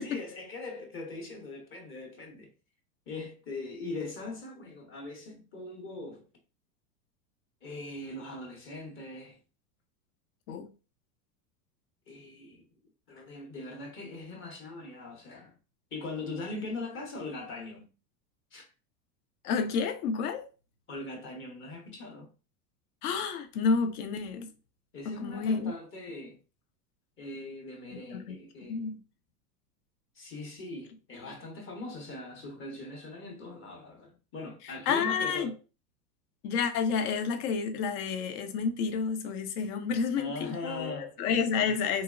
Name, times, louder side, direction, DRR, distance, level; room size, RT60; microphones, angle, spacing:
voice 1, 0.0-2.5 3.1-6.2 7.6-9.4 12.1-12.7 13.1-15.5 15.9-17.8 18.5-18.7 20.9-22.3 24.9-26.4 27.2-28.9 30.1-35.5 40.1-41.1, left 2 dB, 25° left, 0.7 m, -41 dB
voice 2, 19.4-20.5 23.0-24.5 25.0-25.7 28.1-28.4 28.7-29.0 34.9-35.5 36.4-42.0, left 5 dB, 65° left, 0.7 m, -30 dB
3.0 x 2.0 x 2.3 m
hypercardioid pair, 115°, 50 cm